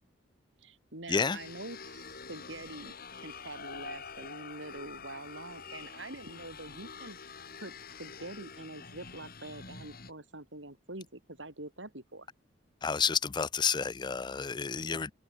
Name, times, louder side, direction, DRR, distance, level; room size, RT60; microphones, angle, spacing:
voice 1, 0.6-7.2 7.6-7.7 8.0-12.3, right 2 dB, 75° right, 6.1 m, -45 dB
sound 1, 1.2-10.1, left 5 dB, 55° left, 5.0 m, -46 dB
voice 2, 12.8-15.1, left 6 dB, 25° left, 0.4 m, -30 dB
open air
head